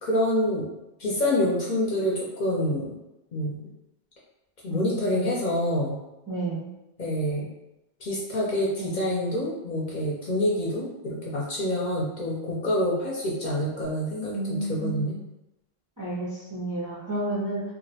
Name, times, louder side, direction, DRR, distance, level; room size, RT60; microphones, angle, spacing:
voice 1, 0.0-0.7 1.0-3.0 3.3-3.6 4.6-6.0 7.0-7.5 8.0-15.2, left 1 dB, 55° left, -4 dB, 0.6 m, -27 dB
voice 2, 4.7-5.2 6.3-6.7 8.8-9.0 14.3-15.1 16.0-17.6, right 2 dB, 35° right, -7 dB, 0.3 m, -31 dB
2.3 x 2.0 x 2.7 m, 0.93 s
omnidirectional pair, 1.1 m